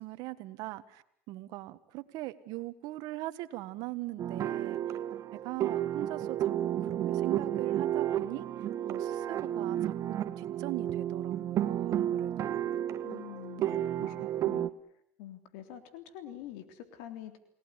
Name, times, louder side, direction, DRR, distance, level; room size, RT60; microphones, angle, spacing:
voice 1, 0.0-5.0 5.4-8.5 8.9-12.8 13.6-13.9, right 18 dB, 65° right, 12 dB, 1.7 m, -41 dB
sound 1, 4.2-14.7, right 11 dB, 50° right, 1.4 m, -32 dB
voice 2, 13.0-14.7 15.2-17.4, left 11 dB, 75° left, 9 dB, 3.5 m, -46 dB
29.0 x 18.0 x 9.8 m, 0.71 s
supercardioid pair, 100°, 7 cm